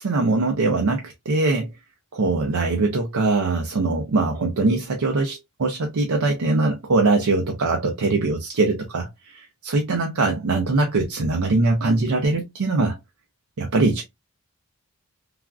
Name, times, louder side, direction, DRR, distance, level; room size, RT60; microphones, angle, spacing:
voice 1, 0.0-1.7 2.1-13.0 13.6-14.0, right 3 dB, 85° right, 0.5 m, -22 dB
3.3 x 2.4 x 2.3 m
head